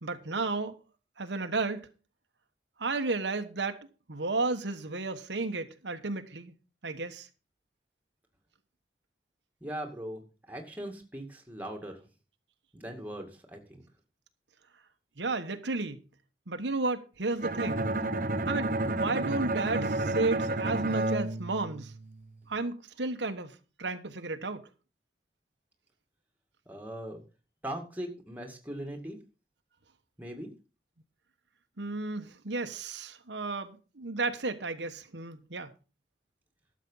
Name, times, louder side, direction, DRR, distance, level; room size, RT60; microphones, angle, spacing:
voice 1, 0.0-0.7 1.2-1.9 2.8-3.7 4.1-6.5 6.8-7.3 15.2-16.0 16.5-17.8 18.5-21.9 22.5-24.6 31.8-35.7, right 3 dB, 85° right, 1.3 m, -33 dB
voice 2, 9.6-10.2 10.5-12.0 12.7-13.8 26.7-27.2 27.6-29.2 30.2-30.5, right 1 dB, 10° right, 2.2 m, -40 dB
Bowed string instrument, 17.4-22.3, right 2 dB, 50° right, 0.8 m, -31 dB
12.5 x 7.5 x 5.6 m
head